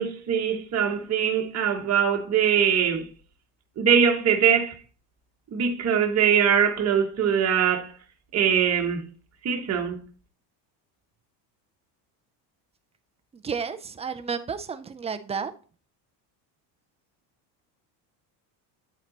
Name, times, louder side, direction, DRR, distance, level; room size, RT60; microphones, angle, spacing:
voice 1, 0.0-3.1 3.8-4.7 5.5-7.9 8.3-9.0 9.4-10.0, right 7 dB, 30° right, 1.2 m, -22 dB
voice 2, 13.4-15.5, right 6 dB, 15° right, 0.3 m, -31 dB
9.2 x 4.3 x 4.0 m
supercardioid pair, 115°, 49 cm